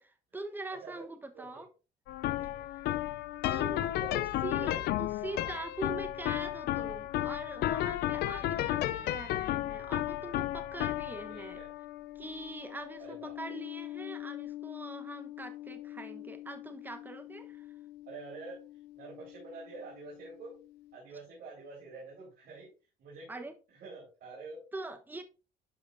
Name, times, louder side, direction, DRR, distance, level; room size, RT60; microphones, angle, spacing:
voice 1, 0.0-1.7 2.7-2.9 3.4-11.6 12.1-17.7 23.3-23.5 24.7-25.2, right 2 dB, 10° right, 1.0 m, -43 dB
voice 2, 0.7-1.1 1.3-1.6 2.1-2.7 4.0-4.8 5.3-5.6 11.3-11.8 13.0-13.6 18.1-18.6 18.9-20.5 20.9-22.7 23.0-24.6, right 3 dB, 65° right, 3.7 m, -47 dB
sound 1, 2.1-19.3, left 14 dB, 70° left, 0.5 m, -35 dB
11.5 x 5.0 x 2.6 m
cardioid pair, 110°, 17 cm